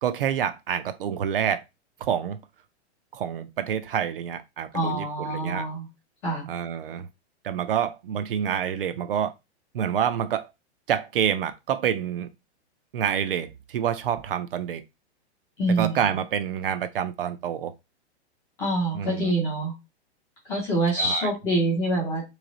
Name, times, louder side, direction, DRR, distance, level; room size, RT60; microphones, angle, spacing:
voice 1, 0.0-1.6 2.0-2.4 3.1-5.7 6.5-7.1 7.4-9.3 9.7-10.5 10.9-12.3 12.9-14.8 15.7-17.7 18.9-19.3 21.0-21.3, right 9 dB, 55° right, 0.4 m, -27 dB
voice 2, 4.7-5.9 6.2-6.5 15.6-16.0 18.6-19.7 20.5-22.2, right 1 dB, 5° left, 0.4 m, -25 dB
3.1 x 2.8 x 3.8 m
hypercardioid pair, 170°, 34 cm